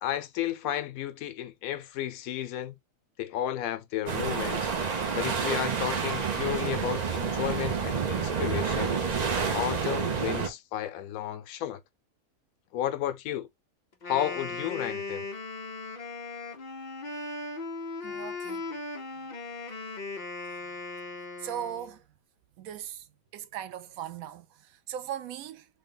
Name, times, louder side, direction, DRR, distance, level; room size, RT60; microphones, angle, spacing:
voice 1, 0.0-2.7 3.2-4.7 5.1-9.0 9.5-11.8 12.7-13.5 14.0-15.3, left 12 dB, 85° left, 1.0 m, -33 dB
sound 1, 4.1-10.5, right 6 dB, 45° right, 0.5 m, -29 dB
Wind instrument woodwind instrument, 13.9-22.0, left 3 dB, 40° left, 0.8 m, -38 dB
voice 2, 18.0-18.6 21.4-22.0 22.6-23.1 23.3-25.7, right 10 dB, 85° right, 1.0 m, -38 dB
3.5 x 2.2 x 3.7 m
omnidirectional pair, 1.4 m